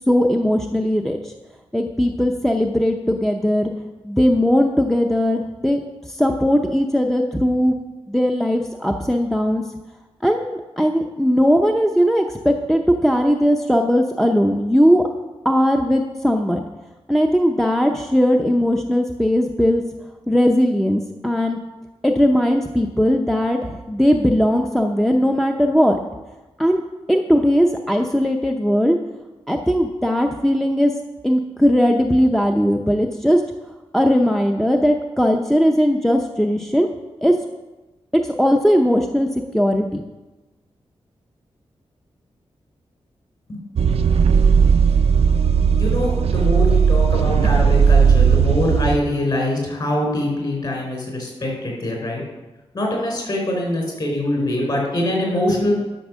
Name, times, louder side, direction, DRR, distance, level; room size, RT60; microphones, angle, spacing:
voice 1, 0.1-1.3 1.7-3.7 4.0-5.8 6.1-7.8 8.1-9.6 10.2-15.0 15.4-16.6 17.1-19.8 20.3-21.6 22.0-26.0 26.6-26.8 27.1-29.0 29.5-30.9 31.2-33.4 33.9-36.9 37.2-37.4 38.1-39.3 39.5-40.0, equal, 5° left, 3 dB, 0.6 m, -18 dB
sound 1, 43.8-49.0, right 6 dB, 75° right, 0.5 m, -16 dB
voice 2, 45.7-52.2 52.7-55.7, left 1 dB, 45° left, -1 dB, 4.2 m, -23 dB
11.5 x 6.5 x 6.2 m, 1.1 s
wide cardioid pair, 140°, 11 cm